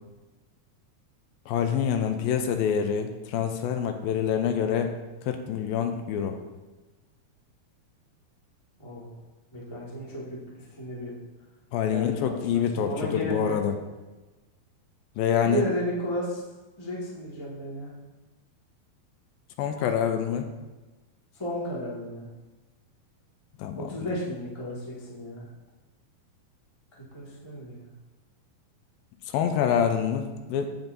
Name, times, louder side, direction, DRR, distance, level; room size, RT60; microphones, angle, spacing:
voice 1, 1.5-5.0 5.3-6.4 11.7-13.8 15.2-15.7 19.6-20.5 23.6-23.9 29.3-30.7, left 8 dB, 80° left, 6 dB, 2.4 m, -26 dB
voice 2, 9.5-10.4 10.8-11.1 11.8-13.6 15.4-16.4 16.8-17.9 21.4-22.3 23.8-25.5 27.1-27.9, equal, 20° left, -6 dB, 0.7 m, -33 dB
15.0 x 5.3 x 2.7 m, 1.2 s
omnidirectional pair, 4.3 m